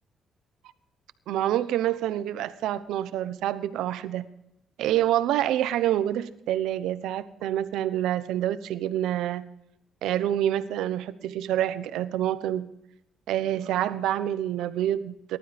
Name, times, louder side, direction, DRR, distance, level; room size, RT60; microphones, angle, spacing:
voice 1, 1.3-4.2 4.8-9.4 10.0-12.7 13.3-15.4, right 12 dB, 85° right, 13 dB, 0.9 m, -27 dB
19.5 x 12.5 x 3.5 m, 0.81 s
cardioid pair, 90°, 0 cm